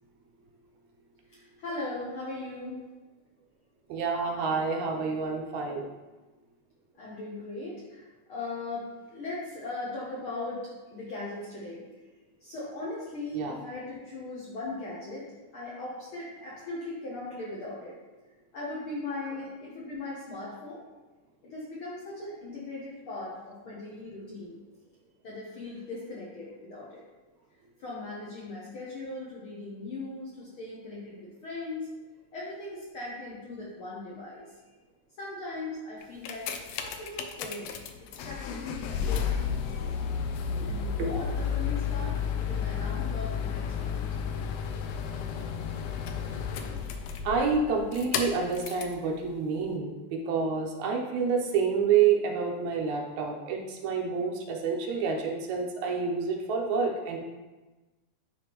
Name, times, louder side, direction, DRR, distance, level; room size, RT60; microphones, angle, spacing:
voice 1, 1.3-2.9 6.9-11.8 12.4-17.9 18.5-20.8 21.4-24.6 25.2-27.0 27.8-31.9 32.3-34.7 35.2-37.8 38.2-40.0 40.6-44.0, left 2 dB, 65° left, -6 dB, 1.3 m, -39 dB
voice 2, 3.9-5.9 13.3-13.5 47.2-57.2, right 5 dB, 75° right, 1 dB, 2.0 m, -28 dB
sound 1, 36.0-49.0 49.7-49.8, left 7 dB, 85° left, 1.5 m, -32 dB
10.5 x 3.6 x 3.0 m, 1.2 s
omnidirectional pair, 3.5 m